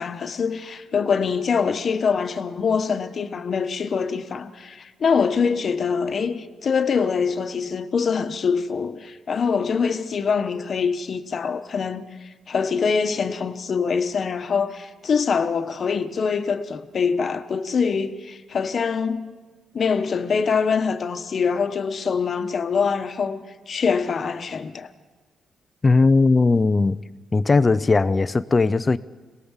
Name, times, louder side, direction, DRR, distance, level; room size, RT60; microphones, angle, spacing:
voice 1, 0.0-12.0 12.5-19.3 19.7-24.9, left 5 dB, 45° left, 1.2 m, -24 dB
voice 2, 25.8-27.0 27.3-29.0, left 3 dB, 25° left, 0.6 m, -18 dB
26.0 x 18.5 x 7.3 m
cardioid pair, 125°, 0 cm